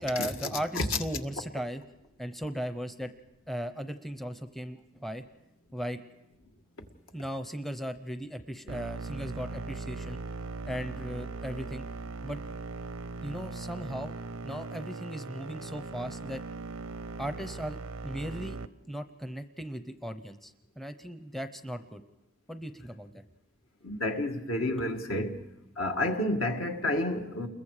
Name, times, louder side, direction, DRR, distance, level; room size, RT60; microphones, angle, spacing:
voice 1, 0.0-1.8 2.2-3.1 3.5-5.2 5.7-6.0 7.1-10.2 10.7-11.9 12.2-12.4 13.2-14.2 14.4-16.4 17.2-18.6 18.9-22.0 22.5-23.2, equal, ahead, 0.7 m, -37 dB
sound 1, 8.7-18.7, right 3 dB, 85° right, 0.7 m, -39 dB
voice 2, 23.8-25.4 25.8-27.5, left 1 dB, 70° left, 1.9 m, -30 dB
29.5 x 22.0 x 4.9 m
head